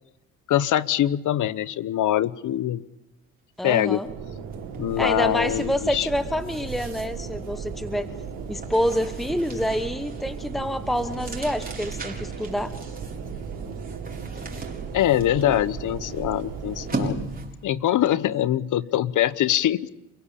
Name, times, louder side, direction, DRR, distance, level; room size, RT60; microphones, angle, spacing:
voice 1, 0.5-2.8 3.6-4.0 4.8-6.1 14.9-17.2 17.6-19.9, left 12 dB, 65° left, 17 dB, 1.0 m, -23 dB
voice 2, 3.6-4.1 5.0-8.1 8.5-12.7, equal, ahead, 11 dB, 1.1 m, -27 dB
sound 1, 3.8-3.9 4.3-17.7, right 3 dB, 25° right, 4.5 m, -38 dB
sound 2, 4.0-17.3, right 6 dB, 90° right, 5.3 m, -36 dB
29.0 x 17.0 x 8.5 m, 0.94 s
cardioid pair, 85°, 33 cm